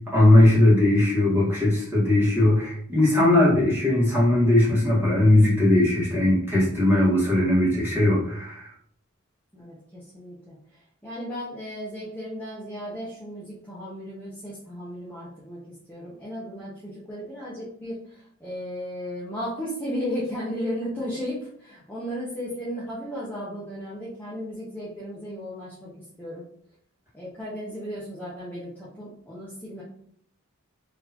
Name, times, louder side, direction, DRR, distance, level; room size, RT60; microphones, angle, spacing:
voice 1, 0.1-8.7, left 1 dB, 10° right, -7 dB, 1.4 m, -19 dB
voice 2, 9.5-15.6 15.9-26.4 27.1-29.8, equal, 10° left, -9 dB, 0.8 m, -35 dB
4.0 x 2.8 x 2.9 m, 0.64 s
head